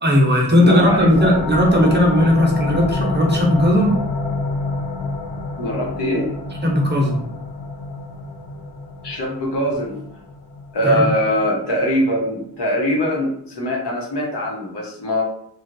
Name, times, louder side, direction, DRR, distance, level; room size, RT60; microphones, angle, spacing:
voice 1, 0.0-4.0 6.6-7.2 10.8-11.0, equal, 25° right, -2 dB, 0.7 m, -16 dB
voice 2, 0.6-1.3 5.6-6.3 9.0-10.0 10.7-15.2, equal, 80° left, -2 dB, 1.0 m, -22 dB
sound 1, 0.6-12.0, left 3 dB, 60° left, 0.5 m, -28 dB
3.1 x 2.3 x 2.6 m, 0.71 s
wide cardioid pair, 90°, 40 cm